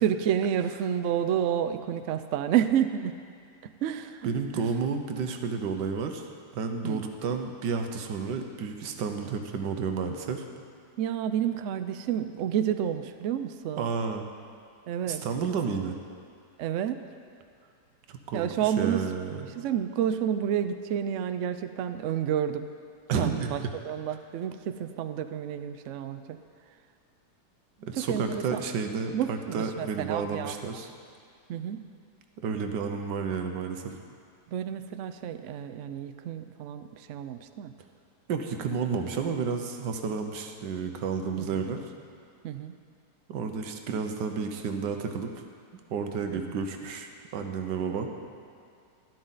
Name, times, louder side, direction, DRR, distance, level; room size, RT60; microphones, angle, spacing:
voice 1, 0.0-3.1 3.8-4.6 6.8-7.0 11.0-13.9 14.9-15.2 16.6-17.0 18.3-19.0 19.6-22.7 23.2-23.6 23.8-26.4 27.9-28.6 29.1-30.5 31.5-31.8 34.5-37.7 41.4-41.6 42.4-42.7 46.3-46.4, right 9 dB, 75° right, 10 dB, 0.7 m, -30 dB
voice 2, 4.2-6.2 6.5-10.5 13.8-14.3 15.1-16.0 18.1-19.5 23.1-23.7 27.8-30.9 32.4-33.9 38.3-41.8 43.3-45.3 45.9-48.1, right 5 dB, 90° right, 5 dB, 1.5 m, -31 dB
11.5 x 11.5 x 4.0 m, 2.3 s
omnidirectional pair, 1.8 m